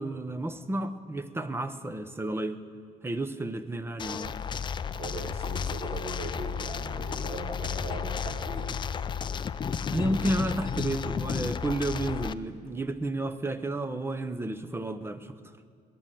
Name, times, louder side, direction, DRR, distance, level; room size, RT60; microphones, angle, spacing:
voice 1, 0.0-2.6 3.0-4.4 9.9-15.4, right 2 dB, 15° right, 12 dB, 0.7 m, -31 dB
sound 1, 4.0-12.3, left 7 dB, 30° left, 0.4 m, -33 dB
voice 2, 4.9-8.7, right 2 dB, 35° right, 1 dB, 1.7 m, -38 dB
20.0 x 7.8 x 9.1 m, 2.1 s
cardioid pair, 110°, 17 cm